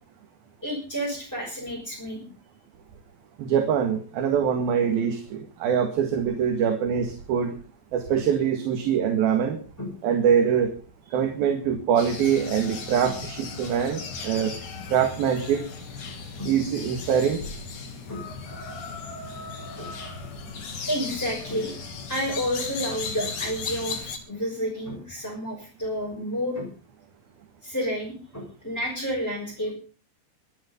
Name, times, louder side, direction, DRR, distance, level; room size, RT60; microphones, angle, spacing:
voice 1, 0.6-2.3 9.8-9.9 13.0-13.1 16.4-16.5 18.1-18.2 19.8-19.9 20.9-21.7 22.1-26.7 27.6-29.7, equal, 5° left, -3 dB, 5.9 m, -30 dB
voice 2, 3.4-7.5 7.9-9.6 10.0-10.7 11.1-14.5 14.9-15.6 16.4-17.4, right 8 dB, 70° right, 6 dB, 3.7 m, -24 dB
sound 1, 12.0-24.2, left 4 dB, 55° left, 4.2 m, -36 dB
24.0 x 9.7 x 5.4 m, 0.38 s
omnidirectional pair, 4.5 m